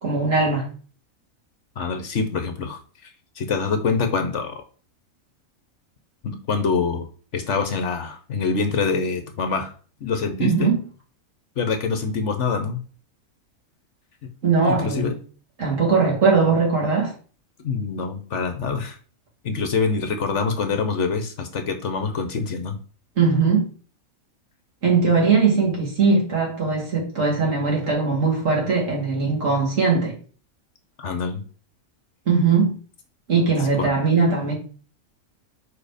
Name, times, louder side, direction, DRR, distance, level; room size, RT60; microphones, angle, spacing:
voice 1, 0.0-0.7 10.4-10.7 14.4-15.2 15.6-17.1 23.2-23.7 24.8-30.2 32.3-32.8 33.3-34.5, right 4 dB, 60° right, 2.7 m, -20 dB
voice 2, 1.8-3.1 3.4-4.6 6.2-7.1 7.3-9.7 10.0-10.7 11.6-12.8 14.6-15.1 17.6-19.0 19.4-22.8 31.0-31.4 33.8-33.9, left 5 dB, 60° left, 1.1 m, -25 dB
4.8 x 4.7 x 5.0 m
omnidirectional pair, 1.5 m